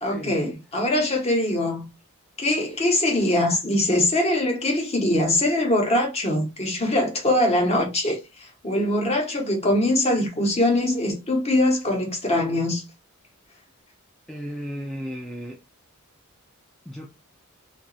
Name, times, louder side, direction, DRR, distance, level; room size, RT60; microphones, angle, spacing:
voice 1, 0.0-1.8 2.4-8.2 8.6-12.8, left 1 dB, 30° left, 1.1 m, -22 dB
voice 2, 14.3-15.6 16.9-17.1, equal, ahead, 0.4 m, -34 dB
2.8 x 2.5 x 3.9 m
head